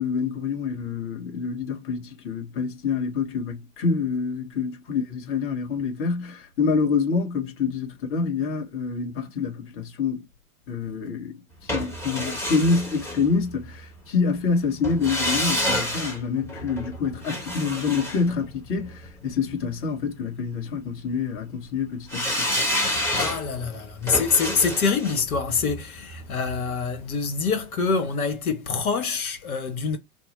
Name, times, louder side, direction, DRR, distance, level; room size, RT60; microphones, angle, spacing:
voice 1, 0.0-10.2 10.7-22.5, left 5 dB, 30° left, 1.2 m, -27 dB
sound 1, 11.7-13.8 14.8-19.1 22.1-27.1 27.4-27.5, left 1 dB, 5° left, 1.0 m, -29 dB
voice 2, 23.2-30.0, left 5 dB, 75° left, 1.1 m, -25 dB
4.4 x 2.0 x 3.1 m
hypercardioid pair, 110°, 44 cm